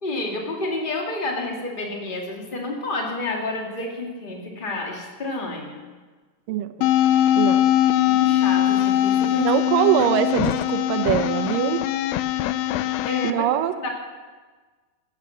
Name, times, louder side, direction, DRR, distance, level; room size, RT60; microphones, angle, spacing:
voice 1, 0.0-5.8 8.0-9.5 12.7-13.5 13.8-13.9, left 2 dB, 20° left, 0 dB, 1.5 m, -30 dB
voice 2, 6.5-6.9 7.4-7.7 9.4-11.9 13.2-13.7, right 11 dB, 80° right, 8 dB, 2.3 m, -23 dB
sound 1, 6.8-13.3, left 12 dB, 90° left, 2.4 m, -21 dB
15.5 x 8.7 x 7.1 m, 1.4 s
omnidirectional pair, 4.0 m